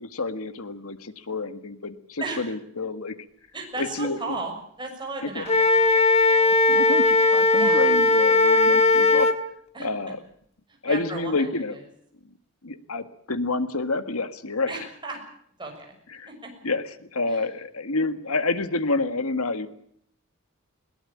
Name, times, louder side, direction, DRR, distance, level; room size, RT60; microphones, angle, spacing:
voice 1, 0.0-3.2 3.8-4.4 5.2-5.4 6.7-9.3 9.8-10.2 10.8-11.8 12.6-14.8 16.1-16.3 16.6-19.7, left 3 dB, 80° left, 11 dB, 1.7 m, -28 dB
voice 2, 3.5-5.8 7.6-7.8 9.7-9.9 10.7-11.5 14.7-15.2 15.6-15.9 17.3-17.5, right 3 dB, 20° right, 2 dB, 6.5 m, -34 dB
Wind instrument woodwind instrument, 5.5-9.4, left 3 dB, 30° left, 1.6 m, -18 dB
21.5 x 19.0 x 8.6 m, 0.67 s
head